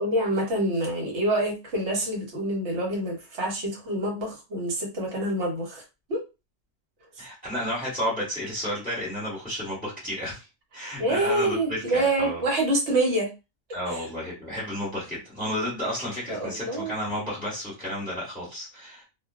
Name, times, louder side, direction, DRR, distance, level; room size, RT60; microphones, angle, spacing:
voice 1, 0.0-5.8 6.1-6.2 11.0-13.3 13.9-14.1 16.3-16.9, right 1 dB, 60° right, 0 dB, 1.1 m, -26 dB
voice 2, 7.2-10.5 10.7-12.4 13.7-19.0, equal, 5° left, -8 dB, 1.2 m, -32 dB
2.4 x 2.3 x 2.3 m, 0.27 s
omnidirectional pair, 1.4 m